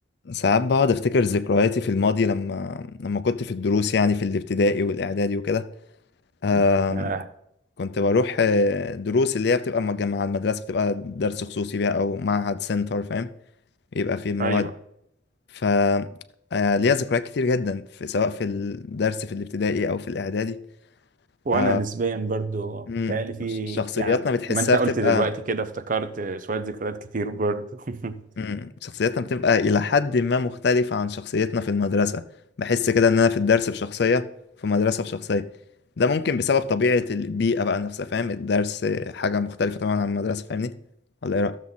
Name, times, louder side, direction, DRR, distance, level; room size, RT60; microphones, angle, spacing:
voice 1, 0.3-5.7 6.4-7.1 7.8-13.3 13.9-14.7 15.5-16.2 16.5-20.6 21.5-21.8 22.9-23.2 23.7-25.3 28.4-32.2 32.6-34.3 34.6-35.5 36.0-40.8 41.2-41.6, left 4 dB, 65° left, 0.5 m, -23 dB
voice 2, 6.9-7.2 14.4-14.7 21.4-24.2 24.5-28.2, right 3 dB, 50° right, 0.7 m, -27 dB
13.0 x 7.2 x 4.1 m
head